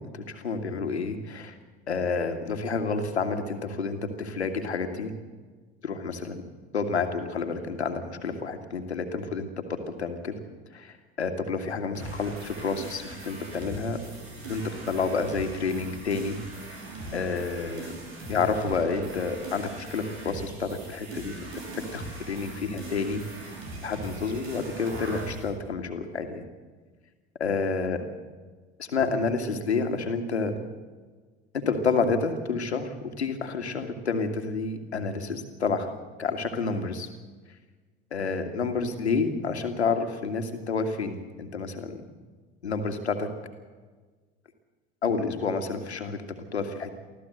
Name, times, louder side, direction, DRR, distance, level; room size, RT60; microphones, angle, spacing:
voice 1, 0.0-1.6 1.9-5.1 5.8-6.4 6.7-10.4 10.7-14.0 14.5-16.4 16.7-16.8 17.1-17.9 18.3-21.5 21.9-23.2 23.8-26.4 27.4-28.0 28.8-30.5 31.5-35.9 36.2-37.1 38.1-42.0 42.6-43.3 45.0-46.2 46.5-46.9, left 4 dB, 90° left, 7 dB, 2.1 m, -29 dB
sound 1, 11.9-25.5, right 2 dB, 75° right, 5.7 m, -40 dB
24.5 x 15.0 x 7.9 m, 1.4 s
hypercardioid pair, 70°, 32 cm